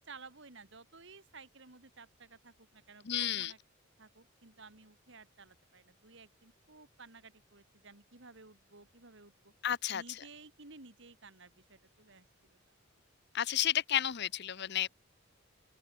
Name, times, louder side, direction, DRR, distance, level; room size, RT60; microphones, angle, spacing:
voice 1, 0.0-3.6 4.0-9.5 9.9-12.8, right 4 dB, 60° right, 2.9 m, -55 dB
voice 2, 3.0-3.5 9.6-10.0 13.3-14.9, left 11 dB, 55° left, 0.7 m, -32 dB
open air
head